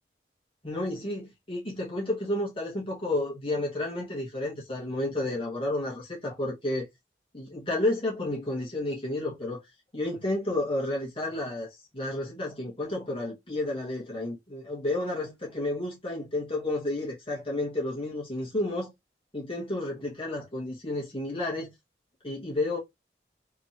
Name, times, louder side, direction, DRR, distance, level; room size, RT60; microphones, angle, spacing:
voice 1, 0.6-6.9 7.3-9.6 9.9-18.9 19.3-21.7 22.2-22.8, left 1 dB, 30° left, 1.7 m, -31 dB
3.7 x 3.2 x 2.9 m
head